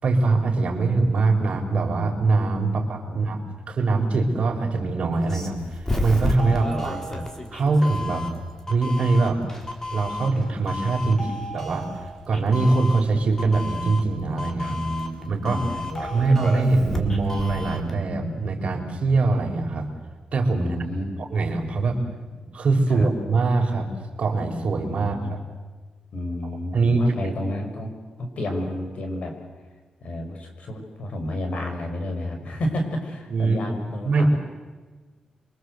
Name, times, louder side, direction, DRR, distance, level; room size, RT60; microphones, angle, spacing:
voice 1, 0.0-3.4 3.7-7.0 7.5-8.3 8.7-9.4 9.9-11.2 11.5-11.9 12.3-14.8 15.3-15.6 16.0-19.9 20.3-20.7 21.2-22.0 22.5-23.9 24.2-25.4 26.7-27.3 33.3-33.6 34.0-34.4, right 3 dB, 55° right, 2 dB, 4.9 m, -22 dB
voice 2, 2.7-3.2 6.5-7.3 11.0-11.5 14.6-16.1 20.5-21.2 22.9-23.1 24.9-25.3 26.1-27.9 28.2-29.4 30.0-34.4, left 1 dB, 60° left, 4 dB, 6.1 m, -31 dB
Doorbell, 5.1-17.9, left 1 dB, 20° left, 3.7 m, -32 dB
28.0 x 24.0 x 8.1 m, 1.3 s
wide cardioid pair, 120°, 2 cm